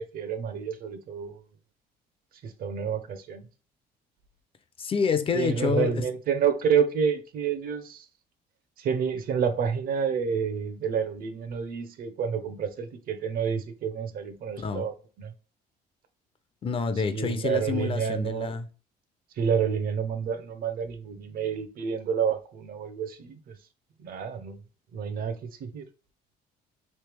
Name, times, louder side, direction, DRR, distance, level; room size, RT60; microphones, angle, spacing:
voice 1, 0.0-1.4 2.4-3.5 5.3-8.1 8.8-15.3 17.1-18.5 19.4-23.6 24.0-24.6 24.9-25.9, right 7 dB, 60° right, 0.7 m, -29 dB
voice 2, 4.8-6.1 14.6-14.8 16.6-18.6, left 5 dB, 30° left, 0.5 m, -28 dB
3.2 x 2.8 x 3.3 m
cardioid pair, 110°, 17 cm